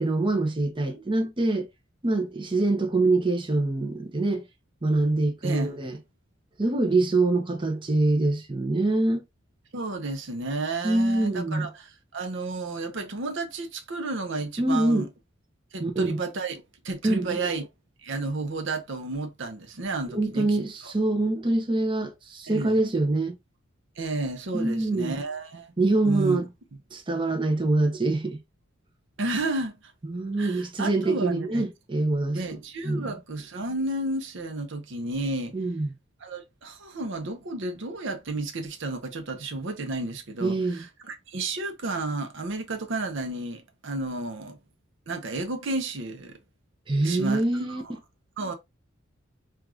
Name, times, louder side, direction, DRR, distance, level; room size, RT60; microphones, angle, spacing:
voice 1, 0.0-1.7 2.0-4.4 4.8-6.0 6.6-9.2 10.8-11.7 14.6-15.1 15.8-16.2 17.0-17.4 20.1-23.3 24.5-25.2 25.8-26.5 26.9-28.4 30.0-32.4 32.8-33.1 35.5-35.9 40.4-40.8 46.9-48.0, right 2 dB, 25° right, 0.6 m, -25 dB
voice 2, 5.4-5.8 9.7-15.1 15.7-17.7 18.0-20.6 20.8-20.9 22.5-22.8 24.0-25.7 26.0-26.4 29.2-29.7 30.4-31.6 32.3-35.6 36.2-44.6 45.1-46.4 47.0-47.8 48.4-48.5, right 2 dB, 65° right, 0.7 m, -32 dB
4.6 x 2.4 x 2.3 m
head